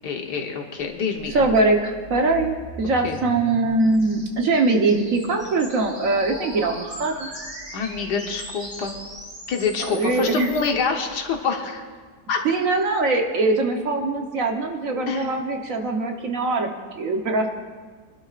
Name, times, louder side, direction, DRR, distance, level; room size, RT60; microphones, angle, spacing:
voice 1, 0.0-1.5 3.0-3.2 7.7-8.9 9.5-11.8 12.3-12.4 15.1-15.3, left 5 dB, 75° left, 3 dB, 1.7 m, -26 dB
sound 1, 0.8-10.7, equal, 15° right, 2.0 m, -40 dB
voice 2, 1.3-7.3 9.8-10.5 12.4-17.5, right 3 dB, 55° right, 3 dB, 1.4 m, -22 dB
sound 2, 3.7-11.4, right 1 dB, 35° right, 4.1 m, -43 dB
25.5 x 12.0 x 2.5 m, 1.5 s
omnidirectional pair, 1.8 m